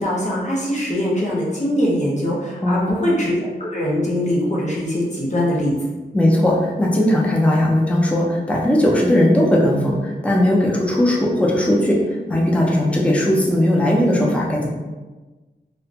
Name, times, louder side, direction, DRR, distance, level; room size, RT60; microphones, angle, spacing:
voice 1, 0.0-5.7, equal, 40° left, -5 dB, 0.8 m, -22 dB
voice 2, 2.6-3.0 6.1-12.0 12.3-14.7, left 1 dB, 5° left, -3 dB, 0.5 m, -18 dB
2.4 x 2.1 x 2.7 m, 1.2 s
wide cardioid pair, 65°, 18 cm